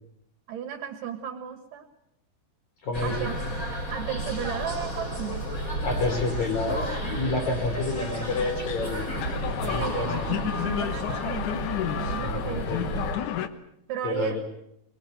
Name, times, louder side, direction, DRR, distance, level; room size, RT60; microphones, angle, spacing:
voice 1, 0.5-1.9 3.0-5.5 9.7-11.6 12.0-13.3 13.9-14.4, right 10 dB, 60° right, 8 dB, 2.4 m, -35 dB
voice 2, 2.8-3.2 5.8-9.1 9.4-10.4 12.2-12.8 14.0-14.4, left 3 dB, 40° left, 4 dB, 4.3 m, -29 dB
sound 1, 2.9-13.2, right 1 dB, 20° left, 2.8 m, -32 dB
sound 2, 7.2-13.5, left 10 dB, 85° left, 1.7 m, -32 dB
23.5 x 21.5 x 7.9 m, 0.76 s
omnidirectional pair, 5.3 m